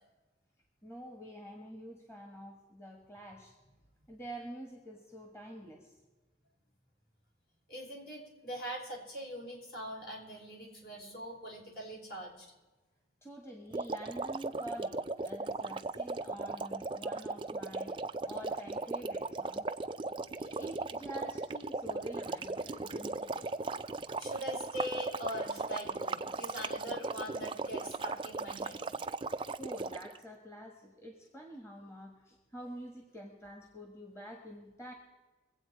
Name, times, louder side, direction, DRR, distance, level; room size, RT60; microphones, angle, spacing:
voice 1, 0.8-3.5 4.1-5.9 13.2-17.9 18.2-19.8 20.3-23.5 29.6-34.9, equal, 15° left, 2 dB, 1.4 m, -47 dB
voice 2, 7.7-12.5 24.2-28.8, equal, 55° left, -2 dB, 4.1 m, -42 dB
sound 1, 13.7-30.2, right 3 dB, 30° right, 0.4 m, -37 dB
23.5 x 8.3 x 4.7 m, 1.2 s
head